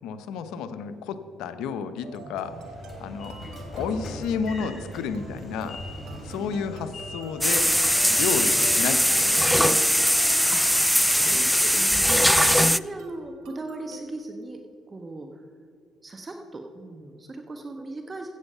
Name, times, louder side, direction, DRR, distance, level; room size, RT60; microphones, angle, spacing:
voice 1, 0.0-2.6 3.0-3.4 3.7-5.8 6.2-7.7 8.1-9.8, left 6 dB, 80° left, 11 dB, 0.8 m, -31 dB
sound 1, 2.0-14.1, right 2 dB, 75° right, 1.5 m, -45 dB
Train / Sliding door, 2.4-8.9, left 1 dB, 35° left, 2.9 m, -40 dB
voice 2, 6.4-6.7 10.5-10.6 11.2-14.6 14.9-15.4 16.0-18.3, right 2 dB, 30° right, 4 dB, 1.1 m, -38 dB
sound 2, 7.4-12.8, equal, ahead, 0.3 m, -20 dB
15.0 x 8.1 x 5.6 m, 2.4 s
supercardioid pair, 75°, 0 cm